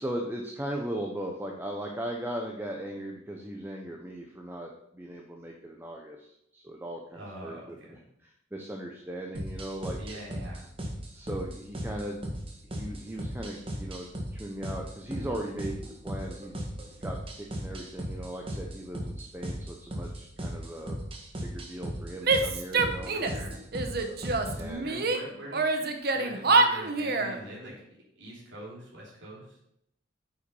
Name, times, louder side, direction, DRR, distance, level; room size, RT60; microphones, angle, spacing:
voice 1, 0.0-7.6 8.2-10.0 11.1-12.2 12.6-16.6 17.0-21.0 21.4-23.1 24.6-25.0, right 1 dB, 10° right, 0 dB, 0.8 m, -38 dB
voice 2, 7.1-8.0 10.0-10.7 23.1-23.6 24.8-25.9 26.1-27.7 28.1-29.6, right 1 dB, 75° right, -6 dB, 3.4 m, -44 dB
sound 1, 9.3-24.7, equal, 30° right, 1.5 m, -37 dB
Female speech woman speaking / Yell, 22.2-23.4 23.7-25.2 25.5-27.4, right 3 dB, 55° right, 0.9 m, -26 dB
8.1 x 5.8 x 5.4 m, 0.77 s
head